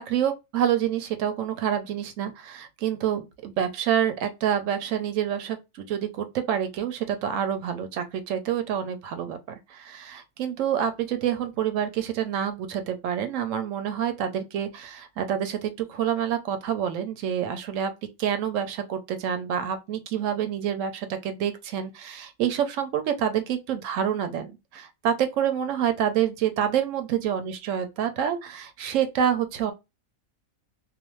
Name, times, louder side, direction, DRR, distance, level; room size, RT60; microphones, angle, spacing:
voice 1, 0.0-9.4 9.7-17.9 18.2-29.7, right 9 dB, 75° right, 0.9 m, -27 dB
2.5 x 2.2 x 3.0 m
omnidirectional pair, 1.4 m